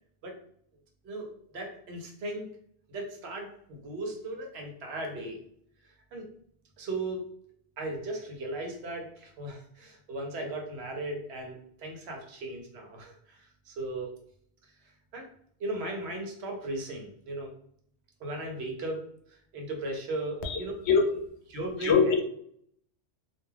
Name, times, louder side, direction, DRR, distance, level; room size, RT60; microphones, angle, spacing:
voice 1, 1.0-2.5 2.9-5.4 5.8-6.3 6.8-7.3 7.8-14.1 14.6-14.7 15.1-15.3 15.6-17.5 18.2-19.0 19.3-20.7 21.5-22.0, right 2 dB, 75° right, 2 dB, 1.0 m, -37 dB
voice 2, 20.9-21.3 21.8-22.2, left 5 dB, 80° left, 5 dB, 0.8 m, -23 dB
2.4 x 2.2 x 3.2 m, 0.66 s
omnidirectional pair, 1.1 m